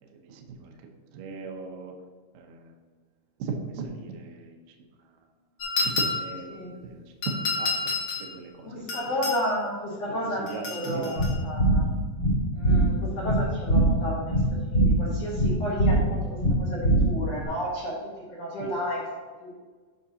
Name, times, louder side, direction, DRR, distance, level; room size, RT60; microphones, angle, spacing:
voice 1, 0.0-0.7 1.1-1.9 2.3-2.7 3.4-4.6 5.8-7.9 8.2-9.0 10.3-11.2 18.6-18.8, right 4 dB, 75° right, 2 dB, 2.1 m, -37 dB
sound 1, 5.6-6.4 7.2-8.3 8.9-9.4 10.5-11.4, left 3 dB, 90° left, 1.2 m, -29 dB
voice 2, 8.6-11.8 12.5-16.2 16.6-17.9 18.3-19.1 19.4-19.5, equal, 70° left, -6 dB, 1.5 m, -32 dB
sound 2, 11.2-17.4, right 1 dB, 45° left, 1.4 m, -23 dB
9.5 x 5.7 x 2.8 m, 1.5 s
omnidirectional pair, 5.0 m